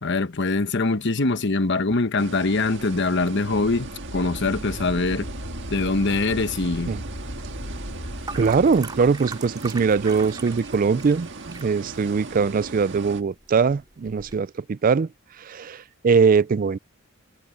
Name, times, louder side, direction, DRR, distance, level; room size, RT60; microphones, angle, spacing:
voice 1, 0.0-5.3 5.7-6.9, left 3 dB, 55° left, 1.1 m, -23 dB
sound 1, 2.2-13.2, right 3 dB, 55° right, 1.7 m, -39 dB
Wind, 3.5-9.1, equal, 85° left, 3.9 m, -37 dB
sound 2, 5.7-14.4, right 3 dB, 20° right, 5.4 m, -43 dB
voice 2, 8.4-15.1 15.4-16.8, right 5 dB, 40° right, 0.3 m, -21 dB
head